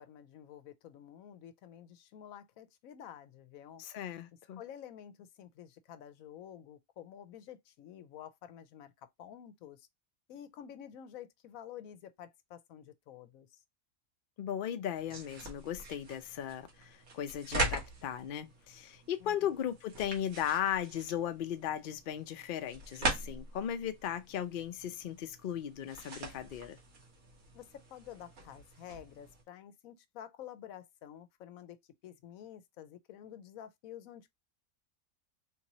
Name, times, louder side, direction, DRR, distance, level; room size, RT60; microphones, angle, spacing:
voice 1, 0.0-3.8 4.5-9.9 10.3-13.6 19.2-19.6 27.5-31.8 32.0-34.3, left 10 dB, 90° left, 1.0 m, -50 dB
voice 2, 3.8-4.6 14.4-26.8, left 10 dB, 55° left, 0.6 m, -37 dB
sound 1, 14.9-29.4, right 2 dB, 80° right, 1.7 m, -42 dB
3.6 x 3.0 x 2.7 m
omnidirectional pair, 1.4 m